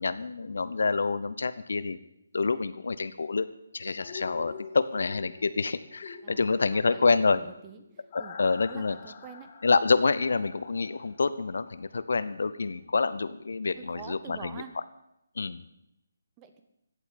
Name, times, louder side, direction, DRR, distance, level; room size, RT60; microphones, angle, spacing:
voice 1, 0.0-2.0 2.3-3.5 3.7-7.4 8.1-9.0 9.6-14.6 15.4-15.6, left 4 dB, 60° left, 14 dB, 0.8 m, -27 dB
sound 1, 4.0-11.9 12.2-12.3, left 5 dB, 35° left, 2.2 m, -46 dB
voice 2, 6.2-7.8 8.2-8.4 8.7-9.5 13.8-14.7 16.4-16.6, right 7 dB, 20° right, 8 dB, 1.4 m, -46 dB
16.0 x 8.1 x 9.4 m, 0.82 s
figure-of-eight pair, 145°, 0 cm